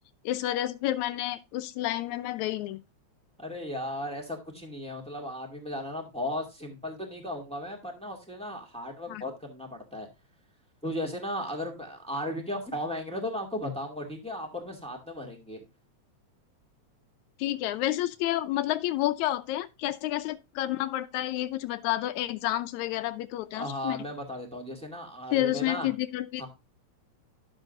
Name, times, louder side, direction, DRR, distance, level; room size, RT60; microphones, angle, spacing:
voice 1, 0.2-2.8 9.1-9.2 17.4-24.0 25.3-26.5, left 14 dB, 80° left, 2.1 m, -30 dB
voice 2, 3.4-10.1 10.8-15.6 23.5-25.9 26.4-26.5, left 1 dB, ahead, 1.6 m, -36 dB
12.5 x 7.2 x 2.5 m
omnidirectional pair, 3.4 m